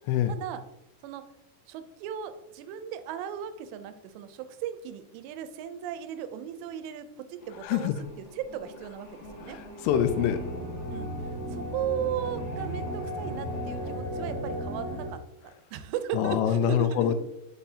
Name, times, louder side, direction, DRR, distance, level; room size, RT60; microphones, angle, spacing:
voice 1, 0.3-0.6 1.0-1.3 1.7-7.9 8.2-9.6 10.9-11.1 11.5-17.1, right 9 dB, 90° right, 10 dB, 2.8 m, -36 dB
sound 1, 7.4-13.9, equal, 65° left, 2.4 m, -48 dB
voice 2, 7.6-8.0 9.5-10.4 16.1-17.1, left 9 dB, 85° left, 10 dB, 2.6 m, -25 dB
sound 2, 9.8-15.1, equal, 50° right, 1.1 m, -35 dB
6.9 x 5.5 x 2.7 m, 0.87 s
omnidirectional pair, 4.9 m